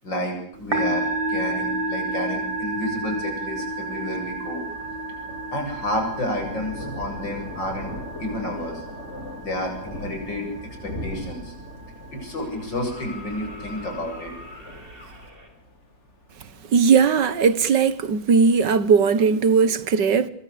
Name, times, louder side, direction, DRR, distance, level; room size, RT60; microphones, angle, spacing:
voice 1, 0.0-4.6 5.5-8.8 9.4-10.5 10.8-11.5 12.1-14.3, left 1 dB, 75° left, 8.7 m, -30 dB
Musical instrument, 0.5-15.3, right 2 dB, 85° right, 5.5 m, -32 dB
Thunder, 2.0-18.9, left 1 dB, 35° left, 3.9 m, -40 dB
sound 1, 11.2-11.3 12.3-15.5 17.3-17.4, left 2 dB, 30° right, 5.2 m, -43 dB
voice 2, 16.7-20.3, right 6 dB, 70° right, 2.0 m, -18 dB
24.5 x 23.5 x 8.7 m
omnidirectional pair, 2.0 m